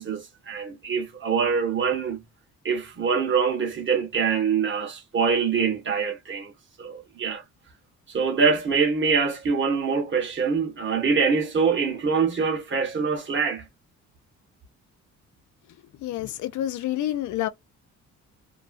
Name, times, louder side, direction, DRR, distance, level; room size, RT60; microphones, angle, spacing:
voice 1, 0.0-2.2 2.6-6.5 6.8-7.4 8.1-13.6, right 5 dB, 40° right, 1.4 m, -24 dB
voice 2, 16.0-17.5, left 13 dB, 75° left, 0.6 m, -28 dB
2.9 x 2.3 x 2.5 m
cardioid pair, 90°, 30 cm